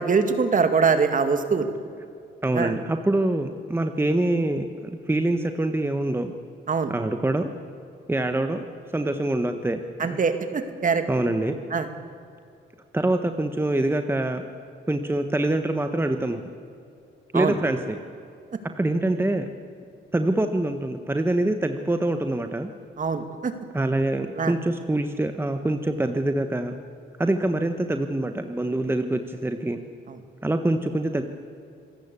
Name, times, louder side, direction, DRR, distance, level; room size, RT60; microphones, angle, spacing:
voice 1, 0.0-1.7 2.5-2.7 6.7-6.9 10.0-11.0 11.7-11.9 17.3-17.5 23.0-23.5 24.4-24.5, right 5 dB, 40° right, 8 dB, 2.4 m, -23 dB
voice 2, 2.4-6.3 6.9-7.5 8.1-10.2 11.1-11.5 12.9-14.4 14.9-16.4 17.3-18.0 18.8-19.5 20.1-22.7 23.7-26.8 27.2-29.8 30.4-31.2, right 1 dB, 10° right, 7 dB, 1.3 m, -25 dB
26.5 x 16.0 x 8.5 m, 2.5 s
cardioid pair, 90°, 20 cm